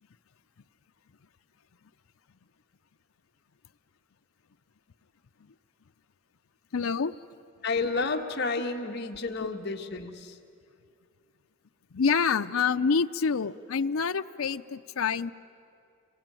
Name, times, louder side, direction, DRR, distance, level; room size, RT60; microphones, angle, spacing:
voice 1, 6.7-7.1 9.4-9.5 11.9-15.3, left 5 dB, 90° left, 10 dB, 0.6 m, -27 dB
voice 2, 7.6-10.4, left 3 dB, 50° left, 4 dB, 1.5 m, -31 dB
28.0 x 22.5 x 9.0 m, 2.4 s
head